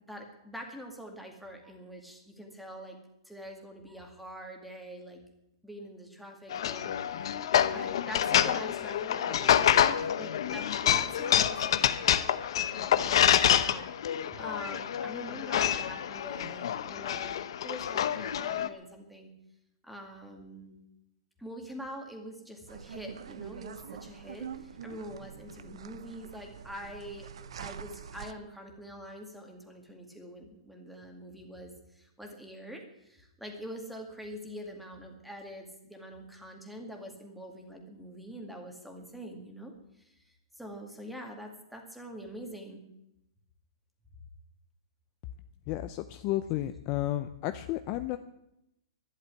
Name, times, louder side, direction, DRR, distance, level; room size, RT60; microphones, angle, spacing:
voice 1, 0.1-3.0 3.3-5.2 5.6-12.3 12.6-19.3 19.8-20.8 21.4-27.3 27.6-42.8, equal, ahead, 2 dB, 2.0 m, -45 dB
sound 1, 6.5-18.7, left 10 dB, 60° left, 0.9 m, -27 dB
sound 2, 22.7-28.3, right 7 dB, 75° right, 1.0 m, -45 dB
voice 2, 45.7-48.2, left 14 dB, 30° left, 10 dB, 0.6 m, -32 dB
12.0 x 10.5 x 9.6 m, 0.85 s
hypercardioid pair, 165°, 3 cm